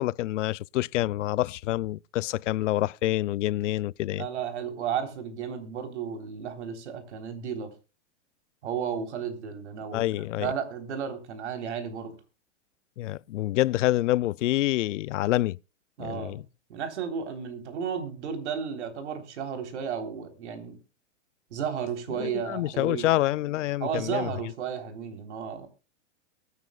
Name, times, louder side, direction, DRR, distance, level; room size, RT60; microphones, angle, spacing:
voice 1, 0.0-4.3 9.9-10.5 13.0-15.6 16.0-16.4 22.2-24.3, left 16 dB, 80° left, 0.5 m, -27 dB
voice 2, 4.1-7.7 8.6-12.2 16.0-16.4 16.7-20.8 21.5-23.2 23.8-25.7, right 7 dB, 70° right, 3.5 m, -33 dB
23.0 x 9.6 x 2.3 m
supercardioid pair, 175°, 36 cm